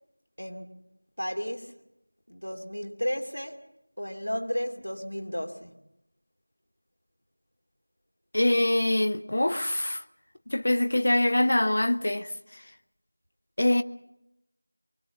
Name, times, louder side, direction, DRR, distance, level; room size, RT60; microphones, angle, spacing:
voice 1, 0.4-0.7 1.2-1.7 2.3-3.6 4.0-5.7, equal, 85° left, 2.8 m, -33 dB
voice 2, 8.3-10.0 10.5-12.3 13.6-13.8, left 1 dB, 40° left, 0.8 m, -24 dB
23.5 x 20.0 x 7.3 m
figure-of-eight pair, 175°, 0 cm